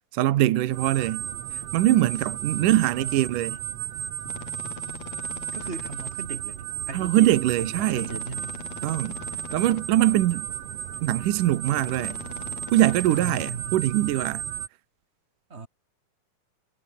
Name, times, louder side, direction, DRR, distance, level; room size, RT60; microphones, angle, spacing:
voice 1, 0.1-1.3 1.5-3.6 6.9-8.1 8.8-9.2 9.5-10.5 11.0-12.2 12.7-14.4, right 14 dB, 75° right, 2.6 m, -22 dB
sound 1, 0.7-14.7, right 10 dB, 55° right, 2.4 m, -34 dB
voice 2, 2.5-3.3 5.5-8.6 13.1-13.8 15.5-15.7, right 4 dB, 25° right, 1.8 m, -38 dB
sound 2, 4.2-6.1 7.9-9.8 11.6-13.5, left 8 dB, 55° left, 3.1 m, -42 dB
omnidirectional pair, 3.9 m